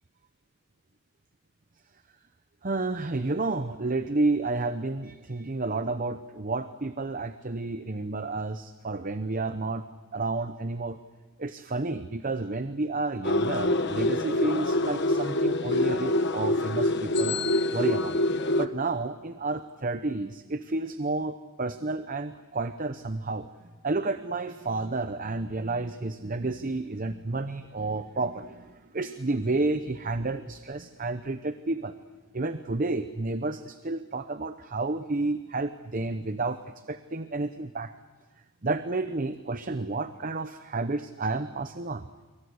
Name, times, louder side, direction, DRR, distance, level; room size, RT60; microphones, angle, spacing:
voice 1, 2.6-9.8 10.1-11.0 11.4-17.4 17.7-18.2 18.6-23.5 23.8-31.9 32.3-36.6 36.9-37.9 38.6-42.1, right 3 dB, 40° right, 10 dB, 0.8 m, -31 dB
sound 1, 13.2-18.7, left 1 dB, 50° left, 1.1 m, -26 dB
27.5 x 24.0 x 8.0 m, 1.2 s
head